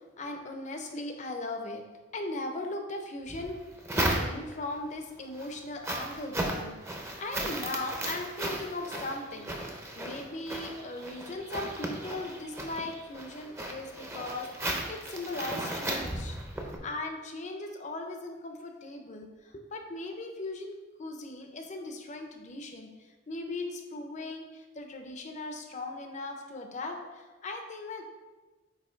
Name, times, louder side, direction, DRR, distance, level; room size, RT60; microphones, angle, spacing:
voice 1, 0.0-1.8 2.1-3.6 3.9-22.9 23.3-28.0, left 2 dB, 40° left, 4 dB, 0.7 m, -38 dB
sound 1, 3.3-4.7 5.2-16.8, right 1 dB, 15° right, 0.8 m, -35 dB
8.2 x 2.9 x 4.5 m, 1.2 s
head